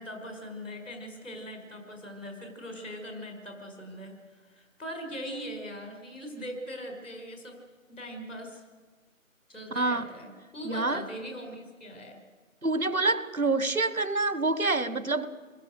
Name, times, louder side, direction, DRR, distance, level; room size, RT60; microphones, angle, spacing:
voice 1, 0.0-4.1 4.4-7.6 7.9-8.6 9.5-12.2, equal, 65° left, 3 dB, 5.4 m, -40 dB
voice 2, 10.6-11.0 12.6-15.3, right 3 dB, 85° right, 14 dB, 1.5 m, -27 dB
27.5 x 21.0 x 6.6 m, 1.4 s
figure-of-eight pair, 160°, 41 cm